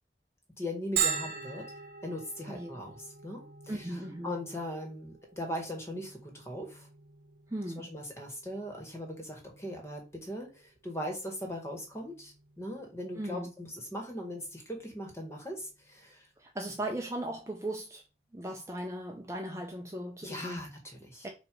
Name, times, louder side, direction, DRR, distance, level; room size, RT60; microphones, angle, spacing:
voice 1, 0.6-1.7 2.0-6.9 7.8-16.3 20.2-21.3, left 1 dB, 15° left, 1.8 m, -40 dB
Bell, 1.0-16.4, right 7 dB, 60° right, 1.3 m, -42 dB
voice 2, 3.7-4.3 7.5-7.9 13.1-13.5 16.4-18.0 18.3-20.7 21.2-21.3, right 1 dB, 15° right, 0.7 m, -37 dB
6.1 x 3.0 x 5.4 m
head